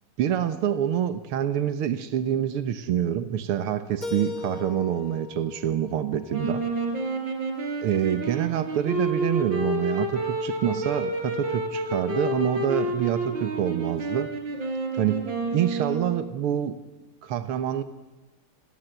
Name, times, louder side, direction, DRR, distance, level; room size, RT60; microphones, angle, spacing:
voice 1, 0.2-6.6 7.8-14.3 15.0-16.8 17.2-17.8, right 10 dB, 85° right, 11 dB, 2.1 m, -26 dB
Keyboard (musical), 4.0-6.9, left 4 dB, 20° left, 2.7 m, -38 dB
sound 1, 6.3-16.3, right 2 dB, 60° right, 4.9 m, -29 dB
29.5 x 20.0 x 8.1 m, 1.1 s
omnidirectional pair, 2.4 m